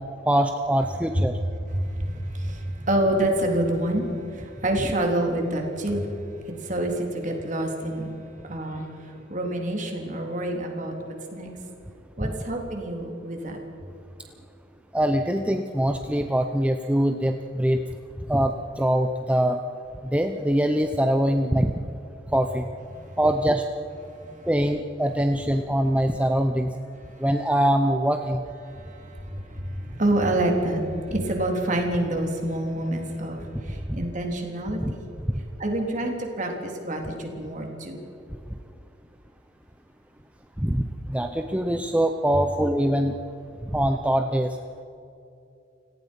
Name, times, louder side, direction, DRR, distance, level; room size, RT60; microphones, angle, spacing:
voice 1, 0.3-1.4 12.2-12.3 14.9-17.8 18.3-19.6 20.0-21.7 22.3-22.7 23.2-23.6 24.5-26.7 27.2-28.4 33.9-34.0 34.8-34.9 40.6-43.2 43.6-44.6, right 1 dB, 5° right, 6 dB, 0.7 m, -23 dB
voice 2, 1.7-6.1 6.6-8.1 8.4-10.9 11.3-11.5 12.2-13.6 24.2-24.3 28.7-35.0 35.6-38.0, right 1 dB, 40° right, 2 dB, 3.6 m, -27 dB
30.0 x 17.5 x 5.5 m, 2.7 s
head